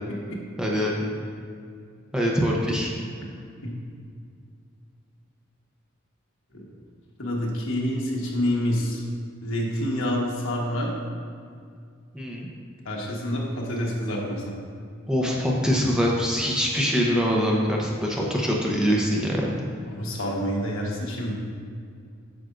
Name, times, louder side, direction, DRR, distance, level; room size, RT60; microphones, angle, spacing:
voice 1, 0.6-1.1 2.1-2.9 12.1-12.5 15.1-19.6, equal, 5° right, -3 dB, 0.7 m, -24 dB
voice 2, 7.2-9.0 9.4-10.9 12.8-14.5 19.9-21.3, left 1 dB, 70° left, -2 dB, 1.3 m, -27 dB
9.2 x 6.3 x 2.5 m, 2.2 s
head